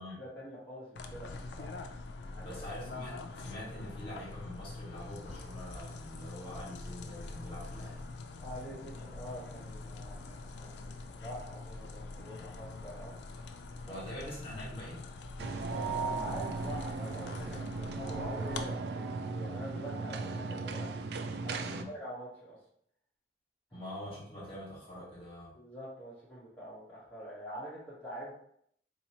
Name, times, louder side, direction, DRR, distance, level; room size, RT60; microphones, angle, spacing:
voice 1, 0.2-1.7 2.2-2.6 8.4-13.2 13.9-14.1 15.7-20.9 21.4-22.6 23.7-23.8 25.5-28.3, equal, 5° left, -11 dB, 1.0 m, -45 dB
sound 1, 0.9-18.7, left 3 dB, 80° left, 0.4 m, -44 dB
voice 2, 2.4-8.1 13.8-15.0 21.6-21.9 23.7-25.5, left 1 dB, 30° left, -5 dB, 1.4 m, -44 dB
sound 2, 15.4-21.8, right 4 dB, 70° right, 0.3 m, -36 dB
4.0 x 2.9 x 2.8 m, 0.68 s
head